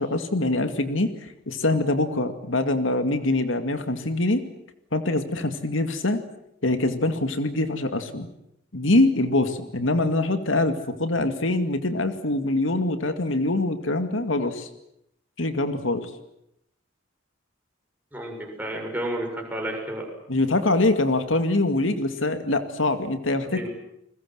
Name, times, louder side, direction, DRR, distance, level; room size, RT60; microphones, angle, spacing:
voice 1, 0.0-4.4 4.9-6.2 6.6-8.3 8.7-14.7 15.4-16.1 20.3-23.7, left 2 dB, 80° left, 8 dB, 2.3 m, -24 dB
voice 2, 18.1-20.0 23.4-23.7, right 1 dB, 10° right, 1 dB, 7.0 m, -31 dB
29.5 x 21.5 x 7.8 m, 0.78 s
head